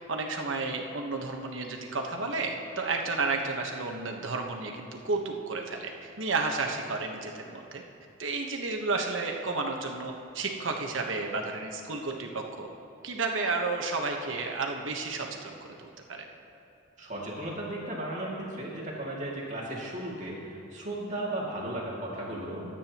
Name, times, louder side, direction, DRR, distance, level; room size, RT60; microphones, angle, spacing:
voice 1, 0.0-7.8 8.2-12.7 13.0-16.3, right 3 dB, 70° right, 2 dB, 1.2 m, -32 dB
voice 2, 17.0-22.7, right 1 dB, 40° right, -4 dB, 2.3 m, -35 dB
23.5 x 8.9 x 3.0 m, 2.6 s
head